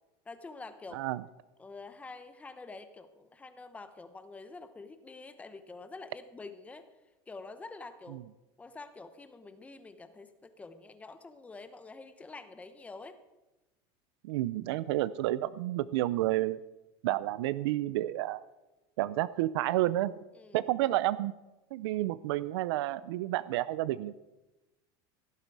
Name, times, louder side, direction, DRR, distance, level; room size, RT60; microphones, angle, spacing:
voice 1, 0.2-1.1 1.6-6.9 7.3-8.2 8.6-13.2 20.3-20.6, left 3 dB, 10° left, 10 dB, 0.9 m, -47 dB
voice 2, 14.2-16.6 17.0-18.4 19.0-20.1 20.5-21.3 21.7-24.1, right 15 dB, 85° right, 17 dB, 0.5 m, -30 dB
17.0 x 11.5 x 4.7 m, 1.0 s
supercardioid pair, 160°, 13 cm